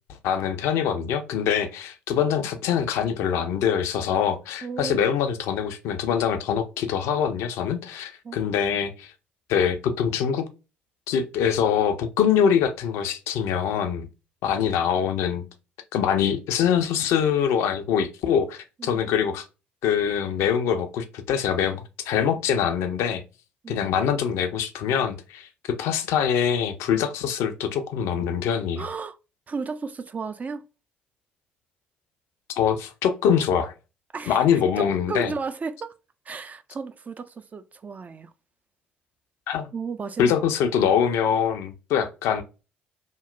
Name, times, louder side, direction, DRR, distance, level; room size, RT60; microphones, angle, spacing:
voice 1, 0.2-9.1 9.5-10.5 11.1-14.1 14.4-15.5 15.9-19.4 19.8-23.2 23.7-28.9 32.6-33.7 34.3-35.3 39.5-39.7 40.2-42.4, left 8 dB, 60° left, 0.4 m, -24 dB
voice 2, 4.6-5.1 8.2-8.8 18.8-19.1 23.6-23.9 28.8-29.2 29.5-30.7 34.1-34.5 34.8-35.9 36.3-38.3 39.7-40.4, right 4 dB, 30° right, 0.3 m, -34 dB
2.9 x 2.0 x 2.3 m
figure-of-eight pair, 50°, 5 cm